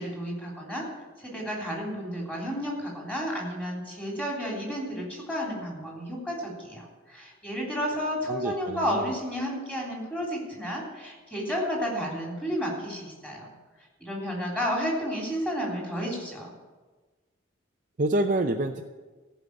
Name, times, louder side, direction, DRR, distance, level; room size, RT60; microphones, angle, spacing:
voice 1, 0.0-13.5 14.0-16.5, equal, 10° left, -3 dB, 3.3 m, -32 dB
voice 2, 8.3-9.1 18.0-18.8, right 2 dB, 40° right, 2 dB, 0.6 m, -27 dB
14.5 x 5.6 x 8.6 m, 1.3 s
head